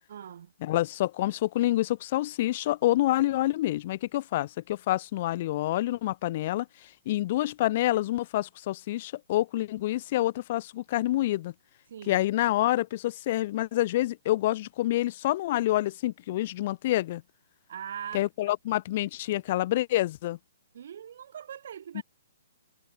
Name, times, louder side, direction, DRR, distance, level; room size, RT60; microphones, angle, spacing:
voice 1, 0.1-0.5 11.9-12.2 17.7-18.3 20.7-22.0, right 9 dB, 60° right, 1.7 m, -41 dB
voice 2, 0.6-6.7 7.1-11.5 12.1-17.2 18.1-20.4 21.9-22.0, left 15 dB, 40° left, 0.5 m, -27 dB
hypercardioid pair, 155°, 0 cm